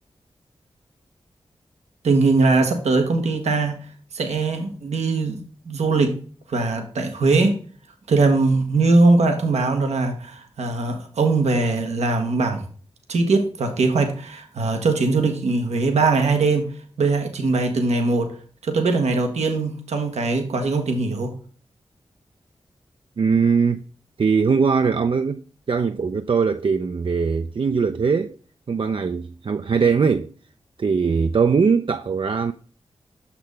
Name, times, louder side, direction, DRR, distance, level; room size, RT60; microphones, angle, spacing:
voice 1, 2.0-3.9 4.1-5.4 5.6-6.2 6.5-7.6 8.1-12.7 13.1-16.7 17.0-18.3 18.6-21.3, right 3 dB, 90° right, 1.1 m, -21 dB
voice 2, 23.2-23.8 24.2-28.4 28.7-30.3 30.8-32.5, right 5 dB, 50° right, 0.4 m, -21 dB
6.4 x 6.0 x 3.2 m
cardioid pair, 40°, 11 cm